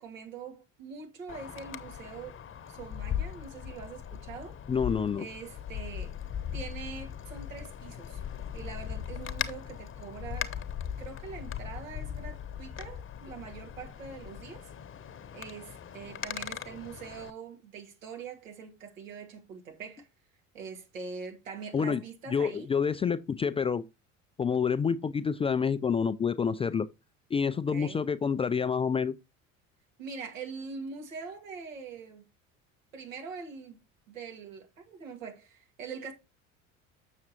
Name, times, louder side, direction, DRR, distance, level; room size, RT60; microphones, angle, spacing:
voice 1, 0.0-2.4 2.7-4.5 5.2-6.1 6.5-8.2 8.5-10.5 11.0-14.7 15.3-20.1 20.5-22.7 27.7-28.0 30.0-32.3 32.9-33.8 34.1-36.1, right 5 dB, 80° right, 2.2 m, -43 dB
Wind, 1.3-17.3, left 9 dB, 35° left, 1.0 m, -39 dB
voice 2, 4.7-5.2 21.7-22.0 22.3-23.8 24.4-26.9 27.3-29.2, left 6 dB, 15° left, 0.3 m, -28 dB
7.3 x 6.5 x 2.9 m
hypercardioid pair, 65°, 38 cm